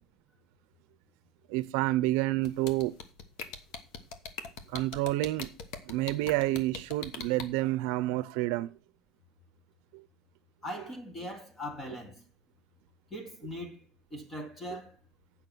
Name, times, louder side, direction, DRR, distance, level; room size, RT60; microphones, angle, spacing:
voice 1, 1.5-2.9 4.7-5.5 5.8-8.7 9.9-10.0 14.7-14.8, right 17 dB, 75° right, 0.6 m, -29 dB
sound 1, 2.4-7.4, left 5 dB, 65° left, 1.1 m, -40 dB
voice 2, 10.6-12.2 13.1-13.8 14.1-15.0, left 1 dB, 15° left, 1.8 m, -40 dB
8.6 x 5.6 x 6.1 m
cardioid pair, 170°, 0 cm